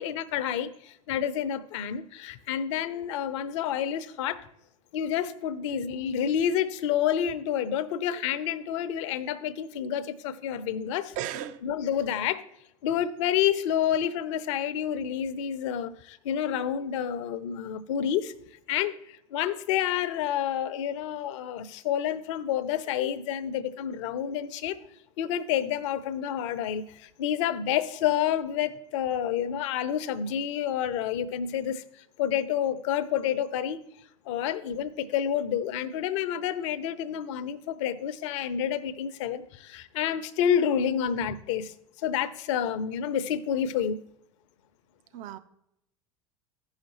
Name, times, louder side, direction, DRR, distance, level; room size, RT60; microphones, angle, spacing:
voice 1, 0.0-4.5 4.9-11.1 11.6-12.4 12.8-18.3 18.7-24.8 25.2-31.8 32.2-33.8 34.3-41.7 42.0-44.0, left 9 dB, 60° left, 0.7 m, -29 dB
voice 2, 11.2-11.6 45.1-45.4, right 11 dB, 45° right, 0.6 m, -34 dB
15.0 x 5.7 x 3.0 m
figure-of-eight pair, 75°, 18 cm